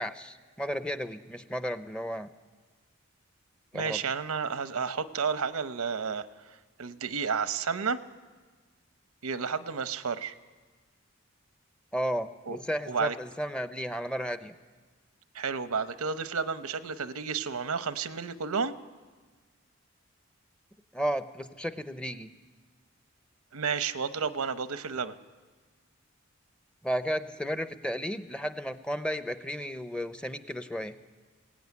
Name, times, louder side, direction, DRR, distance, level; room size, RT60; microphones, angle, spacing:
voice 1, 0.0-2.3 3.7-4.0 11.9-14.5 20.9-22.3 26.8-31.0, equal, 5° left, 10 dB, 0.6 m, -33 dB
voice 2, 3.7-6.3 6.8-8.0 9.2-10.3 12.5-12.6 12.9-13.1 15.3-18.7 23.5-25.1, right 5 dB, 90° right, 12 dB, 0.9 m, -31 dB
20.5 x 17.0 x 9.6 m, 1.4 s
head